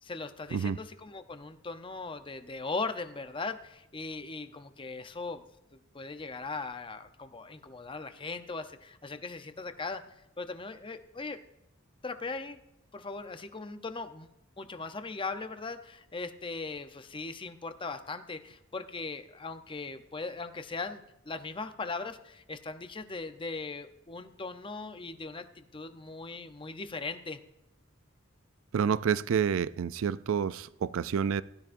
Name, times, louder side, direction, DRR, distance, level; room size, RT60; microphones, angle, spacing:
voice 1, 0.0-5.4 5.7-10.0 10.4-11.4 12.0-12.6 12.9-14.3 14.6-27.4, left 3 dB, 25° left, 9 dB, 0.6 m, -39 dB
voice 2, 28.7-31.4, right 7 dB, 75° right, 16 dB, 0.4 m, -28 dB
17.0 x 12.5 x 2.6 m, 0.89 s
head